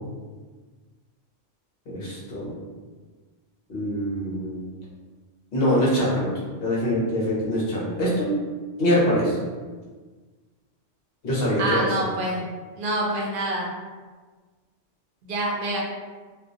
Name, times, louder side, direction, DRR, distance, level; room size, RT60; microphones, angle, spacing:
voice 1, 1.9-2.5 3.7-4.6 5.5-6.3 6.6-8.3 8.8-9.4 11.2-11.9, equal, 60° left, -6 dB, 0.9 m, -23 dB
voice 2, 11.6-12.4 12.8-13.7 15.2-15.8, right 1 dB, 55° right, -3 dB, 0.7 m, -26 dB
2.3 x 2.2 x 2.6 m, 1.4 s
omnidirectional pair, 1.2 m